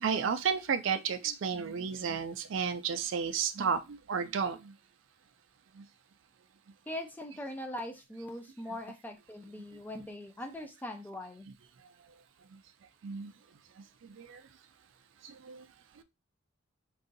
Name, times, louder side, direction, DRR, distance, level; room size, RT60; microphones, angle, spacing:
voice 1, 0.0-3.8 4.1-4.6 13.0-13.3 14.2-14.4 15.5-15.6, right 6 dB, 60° right, 0.4 m, -31 dB
voice 2, 6.9-11.5, left 1 dB, 10° left, 0.4 m, -41 dB
2.7 x 2.4 x 3.8 m
head